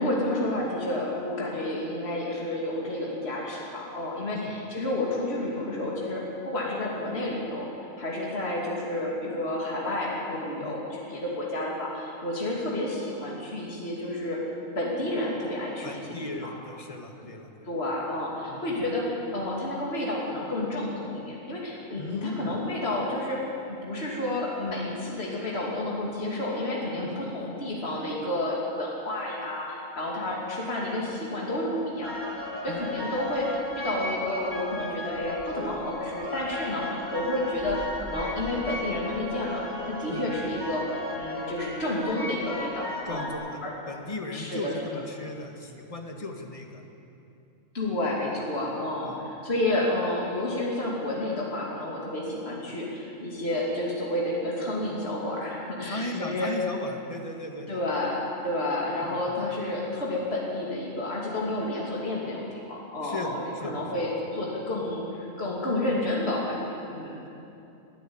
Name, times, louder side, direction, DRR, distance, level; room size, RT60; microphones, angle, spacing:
voice 1, 0.0-7.7 8.0-14.4 14.7-16.5 17.2-17.3 17.6-23.4 23.7-32.3 32.6-33.5 33.7-40.8 41.2-43.3 43.6-43.7 44.3-44.7 47.7-56.5 57.7-67.2, left 1 dB, 45° left, -4 dB, 3.1 m, -30 dB
voice 2, 15.8-17.7 18.5-18.8 22.0-22.5 27.0-27.2 32.7-32.8 40.1-40.3 43.0-43.6 43.9-46.8 48.7-48.8 49.0-49.2 55.8-57.8 59.0-59.4 63.0-64.0, left 2 dB, 25° left, 3 dB, 1.8 m, -37 dB
sound 1, 32.0-43.3, left 1 dB, 15° right, 2.6 m, -35 dB
21.0 x 14.0 x 8.8 m, 2.7 s
omnidirectional pair, 1.5 m